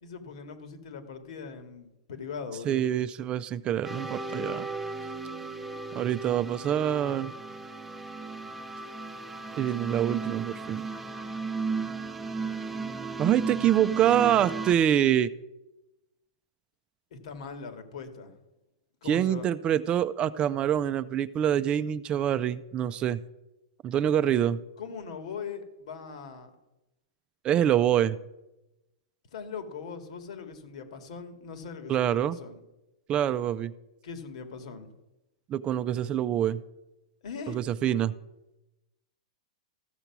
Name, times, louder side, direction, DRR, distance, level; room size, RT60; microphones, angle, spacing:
voice 1, 0.0-2.8 17.1-18.4 19.0-19.5 24.8-26.5 29.3-32.6 34.0-34.9 37.2-37.6, left 5 dB, 70° left, 7 dB, 2.1 m, -40 dB
voice 2, 2.7-4.7 5.9-7.3 9.6-10.9 13.2-15.3 19.1-23.2 23.8-24.6 27.4-28.2 31.9-32.4 33.1-33.7 35.5-36.6 37.5-38.1, right 10 dB, 30° right, 14 dB, 0.5 m, -25 dB
sound 1, 3.8-14.7, right 4 dB, 5° right, 0.9 m, -35 dB
14.5 x 6.7 x 6.0 m, 0.96 s
hypercardioid pair, 125°, 4 cm